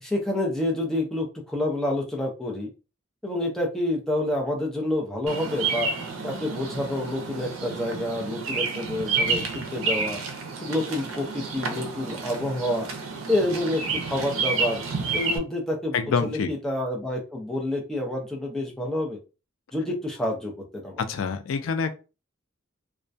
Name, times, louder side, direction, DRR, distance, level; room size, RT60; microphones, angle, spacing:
voice 1, 0.0-2.7 3.2-5.9 6.2-10.2 10.6-12.9 13.3-14.8 15.1-15.9 16.2-19.2 19.7-21.0, left 1 dB, 5° left, 0.5 m, -28 dB
Bird vocalization bird call bird song, 5.3-15.4, right 4 dB, 90° right, 0.5 m, -30 dB
voice 2, 15.9-16.5 21.0-21.9, left 5 dB, 85° left, 0.4 m, -26 dB
2.2 x 2.1 x 2.5 m
head